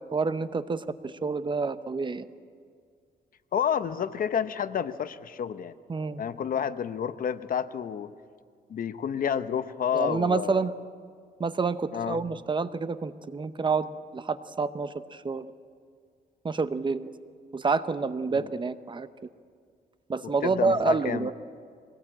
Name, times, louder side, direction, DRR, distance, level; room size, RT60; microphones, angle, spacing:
voice 1, 0.0-2.3 5.9-6.2 9.9-10.7 11.4-15.4 16.4-17.1 17.5-19.1 20.1-21.3, right 4 dB, 30° right, 12 dB, 0.8 m, -28 dB
voice 2, 3.5-5.7 6.2-8.1 8.7-10.7 11.9-12.2 18.3-18.5 20.2-21.3, left 8 dB, 55° left, 12 dB, 0.8 m, -30 dB
23.0 x 19.0 x 8.8 m, 2.1 s
cardioid pair, 120°, 17 cm